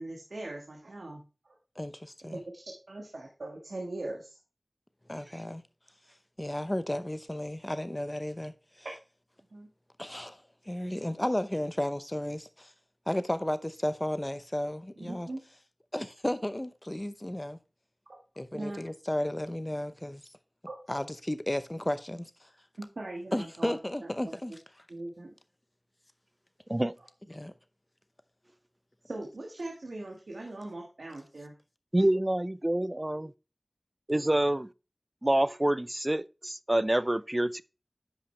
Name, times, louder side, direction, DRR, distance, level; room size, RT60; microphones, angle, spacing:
voice 1, 0.0-1.6 2.3-2.4 2.9-4.4 9.5-9.7 15.0-15.4 18.1-18.2 18.5-18.8 20.6-20.8 22.8-23.8 24.0-24.1 24.9-25.3 29.0-31.5, right 2 dB, 85° right, 1.5 m, -40 dB
voice 2, 1.8-2.4 5.1-5.6 6.4-8.9 10.0-10.4 10.7-12.7 13.1-15.3 15.9-17.6 18.4-20.3 20.9-22.5 23.3-24.5 27.3-27.5, left 1 dB, 20° left, 0.7 m, -33 dB
voice 3, 31.9-33.3 34.1-34.7 35.2-37.6, right 1 dB, 25° right, 0.4 m, -27 dB
10.0 x 5.7 x 3.2 m
wide cardioid pair, 45°, 0 cm